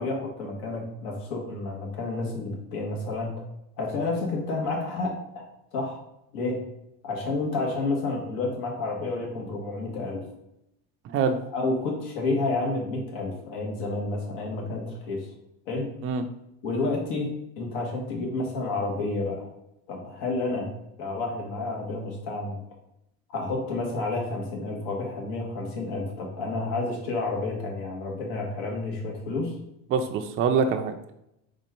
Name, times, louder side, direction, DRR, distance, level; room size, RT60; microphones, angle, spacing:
voice 1, 0.0-3.4 3.8-5.4 5.7-6.0 6.3-6.6 7.0-10.2 11.5-15.3 15.7-15.9 16.6-19.5 19.9-20.7 21.0-22.6 23.3-29.5, left 3 dB, 80° left, -1 dB, 1.4 m, -30 dB
voice 2, 11.0-11.4 16.0-16.2 29.9-31.1, right 6 dB, 35° right, 5 dB, 0.4 m, -25 dB
4.2 x 2.5 x 4.4 m, 0.82 s
supercardioid pair, 115°, 37 cm